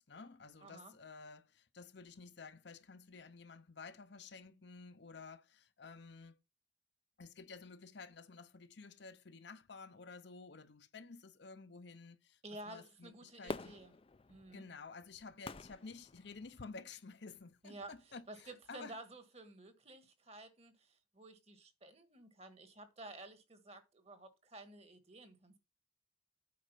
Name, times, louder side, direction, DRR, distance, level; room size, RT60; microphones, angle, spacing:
voice 1, 0.0-6.4 7.2-13.8 14.5-19.0, left 4 dB, 60° left, 0.7 m, -52 dB
voice 2, 0.6-0.9 12.4-13.9 14.3-14.6 17.6-17.9 18.3-25.6, right 2 dB, 30° right, 1.4 m, -52 dB
Fireworks, 13.5-16.8 17.4-17.5, left 3 dB, 30° left, 0.4 m, -47 dB
8.5 x 5.1 x 5.7 m
head